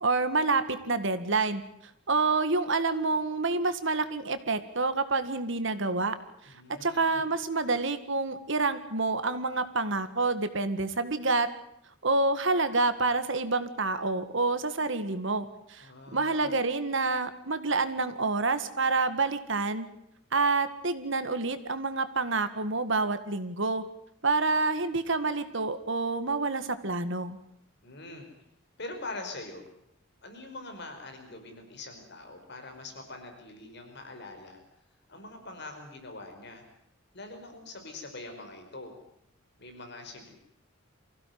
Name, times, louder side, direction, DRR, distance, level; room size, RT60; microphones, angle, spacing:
voice 1, 0.0-1.6 2.1-6.2 6.4-11.5 12.0-19.9 20.3-23.8 24.2-27.4, right 3 dB, 60° right, 11 dB, 1.9 m, -28 dB
voice 2, 6.4-7.2 15.8-16.5 27.8-28.3 28.8-29.7 30.2-34.6 35.1-36.6 37.1-39.0 39.6-40.3, left 2 dB, 55° left, 5 dB, 4.9 m, -43 dB
24.5 x 16.0 x 9.4 m, 0.75 s
head